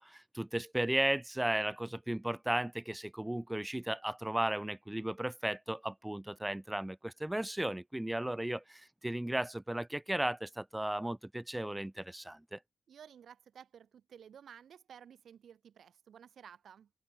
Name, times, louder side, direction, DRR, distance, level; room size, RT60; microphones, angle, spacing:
voice 1, 0.0-12.6, right 1 dB, 10° right, 0.9 m, -35 dB
voice 2, 12.9-16.9, right 8 dB, 85° right, 4.6 m, -54 dB
cardioid pair, 80°, 0 cm